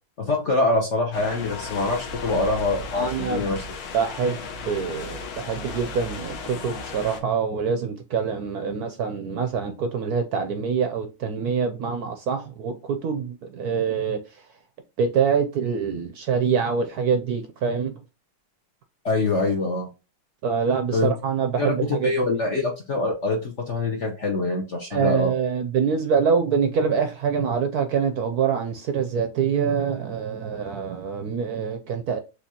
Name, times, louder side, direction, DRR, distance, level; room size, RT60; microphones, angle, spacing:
voice 1, 0.2-3.6 19.0-19.9 20.9-21.1 21.6-25.3, left 3 dB, 55° left, 0.8 m, -24 dB
sound 1, 1.1-7.2, left 3 dB, 85° left, 1.8 m, -35 dB
voice 2, 2.9-3.5 3.9-4.4 4.6-14.2 15.0-18.0 20.4-22.1 24.9-32.2, right 6 dB, 70° right, 0.9 m, -25 dB
6.4 x 2.8 x 2.8 m
omnidirectional pair, 2.2 m